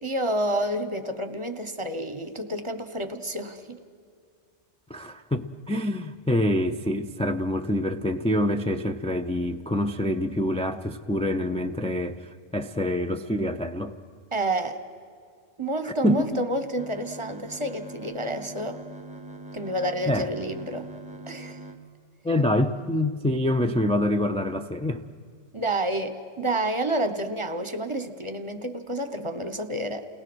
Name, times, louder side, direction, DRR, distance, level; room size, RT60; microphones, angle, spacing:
voice 1, 0.0-3.8 14.3-14.8 15.6-18.8 19.5-20.9 21.3-21.6 25.5-30.0, right 1 dB, 25° right, 8 dB, 1.1 m, -29 dB
voice 2, 4.9-14.0 15.8-16.4 20.1-20.3 22.2-25.0, left 1 dB, 10° left, 5 dB, 0.3 m, -26 dB
sound 1, 16.8-21.8, right 2 dB, 5° right, 0.8 m, -42 dB
29.0 x 19.0 x 6.3 m, 2.2 s
omnidirectional pair, 1.2 m